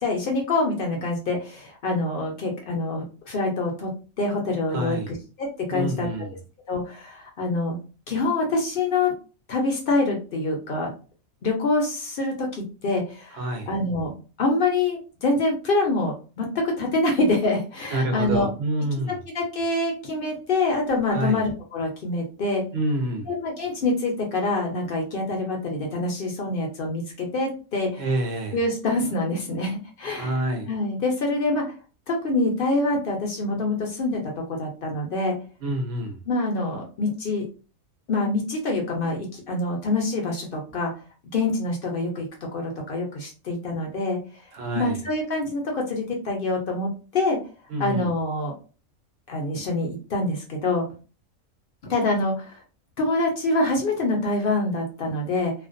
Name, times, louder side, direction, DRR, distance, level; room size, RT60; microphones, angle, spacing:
voice 1, 0.0-6.1 6.7-7.8 8.1-9.1 9.5-10.9 11.4-14.1 14.4-18.5 19.3-22.7 23.3-28.1 28.5-30.4 30.7-31.6 32.1-35.4 36.3-37.4 38.1-40.9 41.3-42.3 42.5-44.2 44.7-47.4 47.8-48.5 49.3-50.8 51.9-52.6 53.0-55.5, left 2 dB, 55° left, 0.6 m, -25 dB
voice 2, 4.7-5.1 5.7-6.3 13.3-13.7 17.9-19.2 21.1-21.4 22.7-23.3 28.0-28.6 30.1-30.7 35.6-36.2 44.5-45.0 47.7-48.1, right 1 dB, 60° right, 0.7 m, -27 dB
2.4 x 2.1 x 2.5 m
omnidirectional pair, 1.4 m